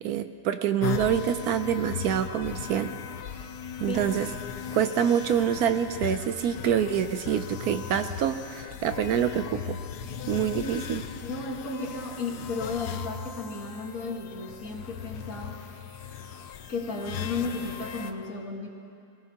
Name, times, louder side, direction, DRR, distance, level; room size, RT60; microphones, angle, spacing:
voice 1, 0.0-2.9 3.8-4.3 4.7-9.8 10.3-11.0, right 9 dB, 70° right, 9 dB, 1.0 m, -26 dB
sound 1, 0.8-18.1, left 8 dB, 80° left, 1.3 m, -38 dB
voice 2, 3.6-4.1 10.5-10.8 11.2-16.0 16.4-18.7, left 3 dB, 60° left, -1 dB, 2.1 m, -34 dB
24.0 x 17.5 x 2.9 m, 2.5 s
omnidirectional pair, 1.8 m